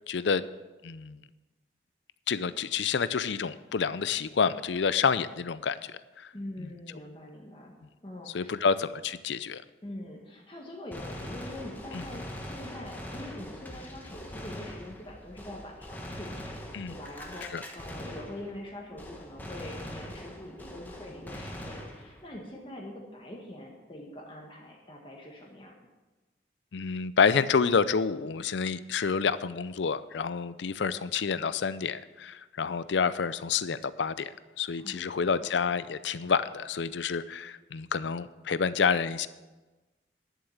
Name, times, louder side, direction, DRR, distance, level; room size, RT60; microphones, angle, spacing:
voice 1, 0.1-0.4 0.8-1.2 2.3-6.3 6.6-6.7 8.3-9.6 11.9-12.0 16.7-17.0 17.5-17.6 26.7-39.3, left 6 dB, 85° left, 15 dB, 0.5 m, -28 dB
voice 2, 6.3-7.7 8.0-8.6 9.8-16.5 16.9-25.7 34.8-35.5, left 1 dB, 30° left, -1 dB, 1.5 m, -44 dB
Gunshot gunfire, 10.9-18.7 19.0-22.3, equal, 10° left, 1.2 m, -42 dB
11.0 x 7.5 x 7.1 m, 1.2 s
head